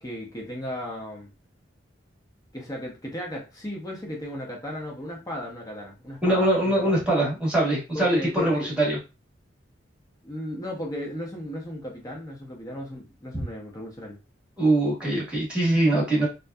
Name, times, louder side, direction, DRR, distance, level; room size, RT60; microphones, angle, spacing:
voice 1, 0.0-1.3 2.5-7.0 7.9-8.7 10.2-14.2, left 1 dB, 20° left, 0.6 m, -35 dB
voice 2, 6.2-9.0 13.3-13.4 14.6-16.3, right 1 dB, 5° right, 1.0 m, -22 dB
2.6 x 2.2 x 2.2 m
head